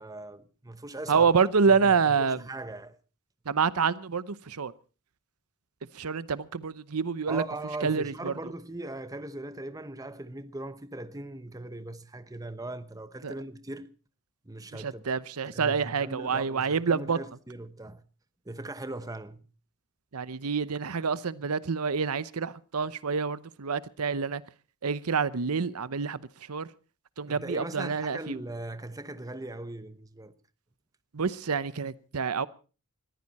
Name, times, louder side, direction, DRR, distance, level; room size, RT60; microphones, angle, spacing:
voice 1, 0.0-1.3 1.7-3.0 7.3-13.9 14.4-15.0 15.5-18.0 18.4-19.4 27.3-30.3, right 2 dB, 15° right, 1.0 m, -39 dB
voice 2, 1.1-2.4 3.5-4.7 5.9-7.4 7.8-8.3 13.2-13.3 14.7-17.2 20.1-24.4 24.8-26.2 26.5-26.7 27.2-28.4 31.1-32.5, right 5 dB, 90° right, 0.8 m, -27 dB
20.5 x 14.5 x 4.2 m
head